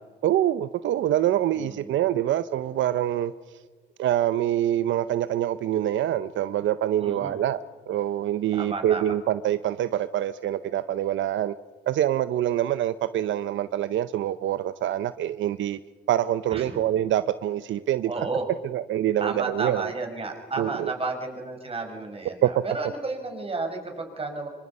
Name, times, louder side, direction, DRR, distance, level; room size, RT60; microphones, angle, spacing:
voice 1, 0.2-3.3 4.0-7.6 7.9-11.5 11.9-15.8 16.1-18.1 18.7-19.9 20.6-20.9 22.4-22.6, right 12 dB, 75° right, 0.7 m, -25 dB
voice 2, 1.5-1.9 7.0-7.4 8.5-9.2 16.5-16.8 18.0-18.5 19.2-24.5, right 3 dB, 30° right, 5.6 m, -32 dB
26.0 x 24.5 x 5.5 m
cardioid pair, 90°, 20 cm